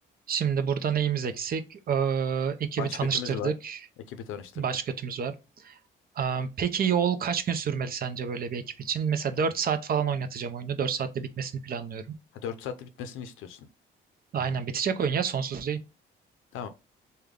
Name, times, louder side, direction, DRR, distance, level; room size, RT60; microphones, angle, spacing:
voice 1, 0.3-3.8 4.6-5.3 5.6-5.8 6.2-12.0 14.3-15.8, right 7 dB, 50° right, 0.6 m, -28 dB
voice 2, 2.8-3.5 4.1-4.7 12.4-13.7 14.3-14.5 16.5-16.7, left 8 dB, 90° left, 0.5 m, -37 dB
3.3 x 2.2 x 3.6 m
cardioid pair, 90°, 20 cm